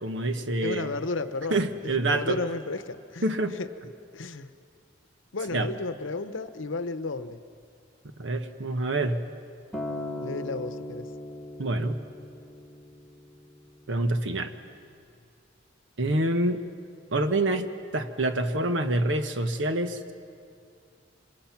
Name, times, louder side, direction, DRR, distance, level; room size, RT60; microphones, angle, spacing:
voice 1, 0.0-0.9 1.5-2.4 3.2-3.6 5.5-5.7 8.2-9.2 11.6-12.0 13.9-14.5 16.0-16.6 17.1-20.1, right 2 dB, 70° right, 9 dB, 1.2 m, -27 dB
voice 2, 0.6-1.6 2.0-4.5 5.3-7.4 10.2-11.1, left 3 dB, 85° left, 12 dB, 0.8 m, -33 dB
Acoustic guitar, 9.7-14.0 14.9-15.0, left 1 dB, ahead, 1.4 m, -38 dB
26.5 x 21.0 x 5.9 m, 2.3 s
head